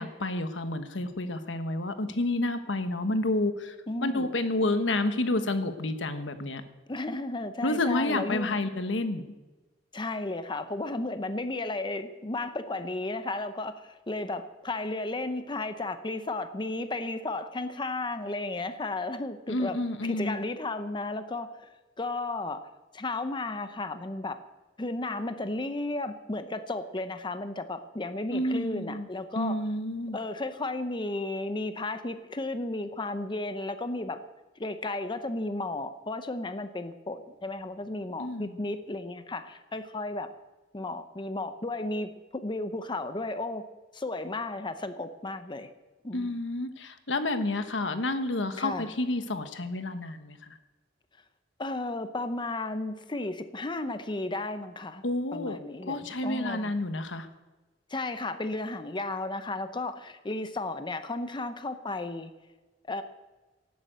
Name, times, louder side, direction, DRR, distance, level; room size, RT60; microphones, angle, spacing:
voice 1, 0.0-3.7 4.0-6.6 7.6-9.2 19.5-20.4 28.3-29.1 29.3-30.2 38.2-38.6 46.1-50.6 55.0-55.6 55.9-57.3, left 2 dB, 85° left, 9 dB, 1.3 m, -30 dB
voice 2, 3.9-4.3 6.9-8.6 9.9-19.8 20.0-22.7 22.9-24.4 24.8-29.6 30.1-34.2 34.6-40.3 40.7-43.6 43.9-45.7 46.0-46.4 48.6-48.9 51.6-55.0 55.3-56.7 57.9-62.3 62.8-63.0, left 2 dB, 25° left, 9 dB, 0.7 m, -34 dB
18.0 x 8.5 x 8.1 m, 1.2 s
head